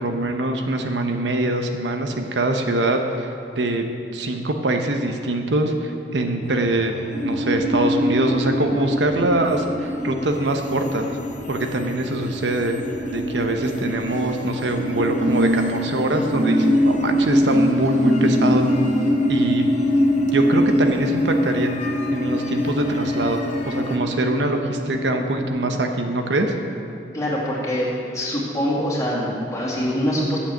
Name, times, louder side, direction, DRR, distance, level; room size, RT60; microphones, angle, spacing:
voice 1, 0.0-3.8 4.1-6.9 7.2-11.1 11.5-12.8 13.1-18.7 19.3-19.6 20.3-21.7 22.1-26.5, right 2 dB, 85° right, 4 dB, 0.9 m, -23 dB
sound 1, 6.4-24.0, left 2 dB, 45° left, 1.1 m, -40 dB
sound 2, 7.1-25.5, equal, 65° right, 2.8 m, -24 dB
sound 3, 13.9-14.5 15.2-15.9 16.3-16.7 17.4-19.0 20.3-20.4, right 1 dB, 45° right, 1.3 m, -25 dB
voice 2, 27.1-27.9 28.1-30.4, equal, 20° left, -6 dB, 2.4 m, -24 dB
8.7 x 7.6 x 7.6 m, 2.6 s
head